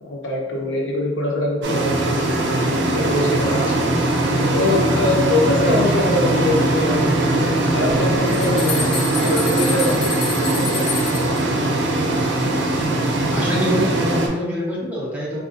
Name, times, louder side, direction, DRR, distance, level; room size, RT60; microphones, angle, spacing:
voice 1, 0.0-3.9 4.5-8.8 9.2-10.3 10.6-10.8 11.1-11.2 13.5-13.6, left 1 dB, 90° left, -2 dB, 0.7 m, -23 dB
sound 1, 1.6-14.3, right 2 dB, 75° right, 0.5 m, -20 dB
sound 2, 8.3-11.4, left 4 dB, 70° left, 1.3 m, -28 dB
voice 2, 13.3-15.4, equal, 10° right, -7 dB, 0.9 m, -24 dB
4.1 x 2.4 x 2.5 m, 1.2 s
head